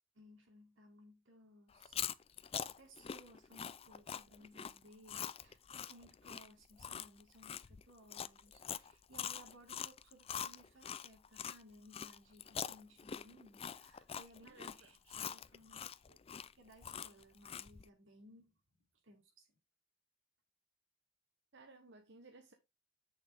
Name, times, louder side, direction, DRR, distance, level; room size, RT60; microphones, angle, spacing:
voice 1, 0.1-2.0 2.4-16.2 16.5-19.5, equal, 80° right, 2.9 m, -61 dB
Chewing mastication, 1.7-11.6 11.9-17.9, left 8 dB, 30° left, 0.4 m, -44 dB
voice 2, 14.4-14.9 21.5-22.5, right 3 dB, 65° right, 1.1 m, -58 dB
8.4 x 6.7 x 3.5 m
head